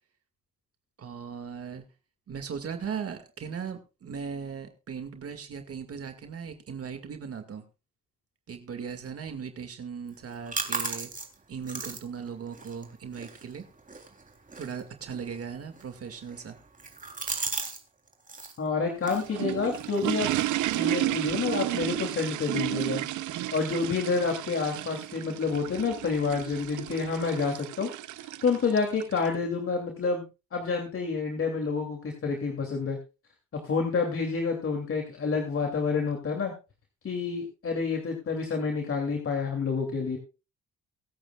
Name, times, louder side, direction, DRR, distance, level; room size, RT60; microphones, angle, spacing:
voice 1, 1.0-1.8 2.3-7.6 8.5-11.1 11.5-13.7 14.6-16.6, right 6 dB, 50° right, 7 dB, 2.1 m, -38 dB
sound 1, 10.1-17.8 18.1-18.6 19.0-21.3, right 3 dB, 25° right, 3.4 m, -39 dB
voice 2, 18.6-20.3 20.7-23.0 23.5-27.9 28.2-30.2 30.5-33.0 33.6-36.5 37.0-40.2, left 4 dB, 45° left, 2 dB, 2.9 m, -28 dB
sound 2, 19.0-29.3, right 14 dB, 80° right, 0.8 m, -32 dB
23.5 x 8.7 x 2.4 m, 0.30 s
cardioid pair, 90°, 30 cm